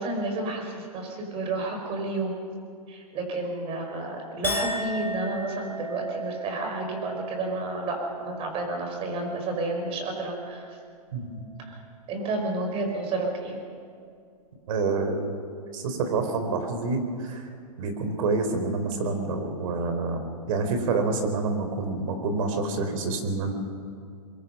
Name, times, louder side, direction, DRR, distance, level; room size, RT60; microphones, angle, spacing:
voice 1, 0.0-2.3 2.9-10.8 11.6-11.8 12.1-13.6, right 2 dB, 30° right, 3 dB, 5.3 m, -31 dB
Chink clink, 4.4-11.0 11.4-12.0, equal, 10° left, 3.9 m, -37 dB
voice 2, 11.1-11.4 14.7-15.4 15.7-17.5 17.8-20.2 20.5-23.5, right 3 dB, 60° right, 6 dB, 4.0 m, -27 dB
24.5 x 22.5 x 5.6 m, 2.3 s
hypercardioid pair, 135°, 20 cm